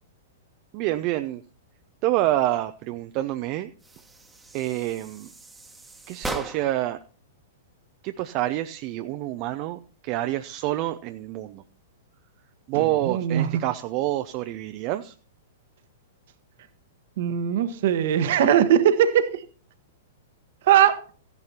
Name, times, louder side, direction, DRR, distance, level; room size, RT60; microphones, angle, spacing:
voice 1, 0.7-1.4 2.0-3.7 4.5-5.3 6.1-7.0 8.0-11.6 12.7-15.1, right 15 dB, 40° right, 0.5 m, -27 dB
sound 1, 3.8-6.9, right 2 dB, 5° right, 1.2 m, -38 dB
voice 2, 12.7-13.6 17.2-19.4 20.6-21.0, right 9 dB, 55° right, 1.1 m, -20 dB
15.0 x 10.5 x 2.8 m
figure-of-eight pair, 105°, 0 cm